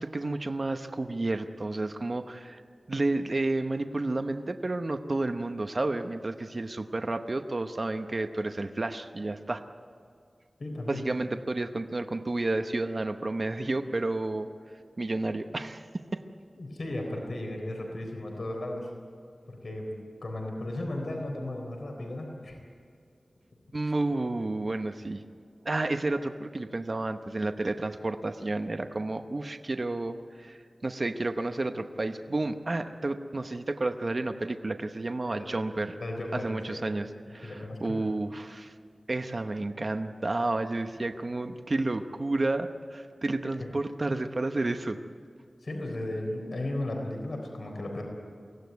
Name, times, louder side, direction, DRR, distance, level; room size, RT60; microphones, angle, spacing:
voice 1, 0.0-2.6 2.9-9.6 10.9-14.5 15.0-15.8 16.1-16.2 23.7-25.2 25.6-35.9 36.3-38.7 39.1-45.0, right 2 dB, 45° right, 7 dB, 0.9 m, -31 dB
voice 2, 10.6-11.1 16.6-18.9 19.5-19.9 20.2-22.6 35.3-37.0 37.3-38.0 45.6-48.0, left 1 dB, 75° left, 1 dB, 4.1 m, -35 dB
23.5 x 16.5 x 9.5 m, 2.3 s
wide cardioid pair, 80°, 0 cm